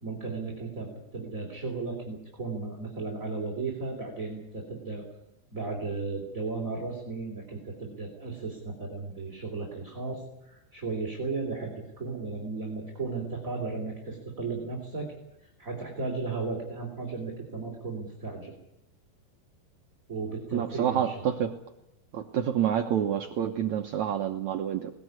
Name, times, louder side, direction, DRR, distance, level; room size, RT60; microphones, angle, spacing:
voice 1, 0.0-5.1 5.5-15.1 15.4-18.5 20.1-21.3, right 4 dB, 20° right, -1 dB, 3.4 m, -35 dB
voice 2, 20.5-21.5 22.1-24.9, right 9 dB, 85° right, 5 dB, 1.6 m, -28 dB
21.0 x 19.5 x 9.5 m, 0.88 s
omnidirectional pair, 5.0 m